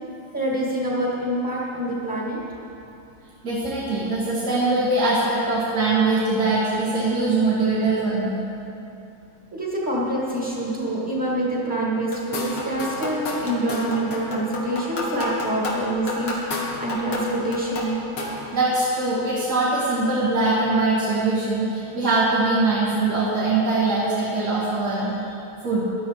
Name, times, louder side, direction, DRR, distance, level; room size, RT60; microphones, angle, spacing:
voice 1, 0.3-2.4 9.5-18.0 18.4-18.6, right 1 dB, 10° right, -5 dB, 2.1 m, -26 dB
voice 2, 3.4-8.3 18.5-25.2 25.6-25.9, right 2 dB, 50° right, -9 dB, 2.6 m, -22 dB
sound 1, 12.1-18.5, left 2 dB, 90° left, 2.6 m, -30 dB
14.5 x 12.0 x 4.7 m, 2.8 s
omnidirectional pair, 2.3 m